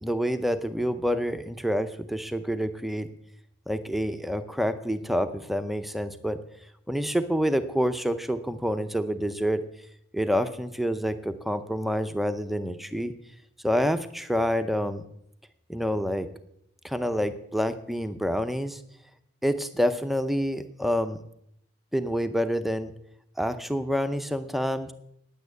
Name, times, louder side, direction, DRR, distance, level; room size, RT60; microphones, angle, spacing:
voice 1, 0.0-3.1 3.7-6.4 6.9-9.6 10.1-13.1 13.6-15.0 15.7-16.3 16.8-18.8 19.4-21.2 21.9-22.9 23.4-24.9, equal, ahead, 10 dB, 0.6 m, -27 dB
10.0 x 8.6 x 8.1 m, 0.76 s
head